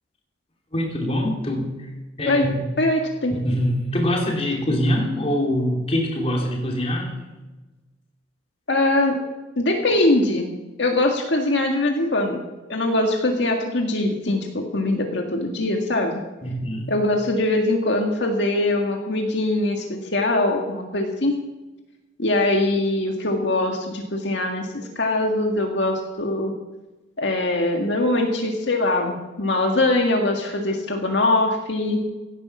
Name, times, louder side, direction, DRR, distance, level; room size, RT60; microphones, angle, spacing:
voice 1, 0.7-1.7 2.2-2.6 3.3-7.1 16.4-16.9, equal, 35° left, 0 dB, 3.1 m, -24 dB
voice 2, 2.8-3.3 8.7-9.2 9.6-10.5 10.8-12.4 12.7-16.1 16.9-21.4 22.2-26.5 27.2-32.0, left 2 dB, 70° left, 2 dB, 1.8 m, -22 dB
16.5 x 10.5 x 6.1 m, 1.1 s
head